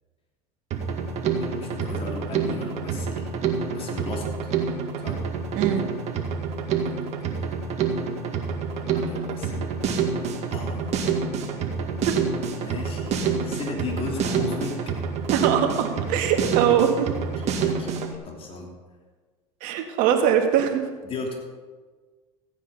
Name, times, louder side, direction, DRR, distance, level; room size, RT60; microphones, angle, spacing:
Drum kit, 0.7-18.1, right 6 dB, 45° right, 2.1 m, -27 dB
voice 1, 1.4-3.3 3.7-4.5 5.0-5.2 6.8-7.1 8.7-9.7 10.1-12.0 12.6-14.8 16.6-16.7 17.3-17.9 18.2-18.7 21.0-21.3, left 3 dB, 40° left, 0 dB, 3.2 m, -36 dB
voice 2, 15.3-17.1 19.6-20.9, right 9 dB, 65° right, 3 dB, 1.9 m, -22 dB
15.0 x 8.9 x 5.5 m, 1.4 s
supercardioid pair, 90°, 15 cm